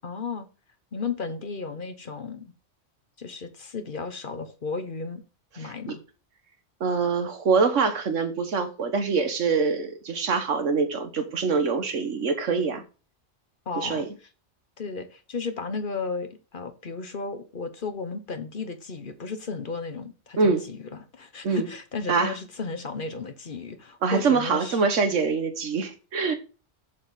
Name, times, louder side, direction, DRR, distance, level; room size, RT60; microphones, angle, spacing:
voice 1, 0.0-0.5 0.9-2.5 3.2-5.2 5.6-6.0 13.7-14.1 14.8-24.8, left 4 dB, 45° left, 1.1 m, -34 dB
voice 2, 5.6-5.9 6.8-12.8 13.8-14.1 20.4-20.6 21.4-21.7 22.1-22.3 24.0-26.3, right 5 dB, 80° right, 1.5 m, -24 dB
7.3 x 7.1 x 4.0 m
omnidirectional pair, 1.2 m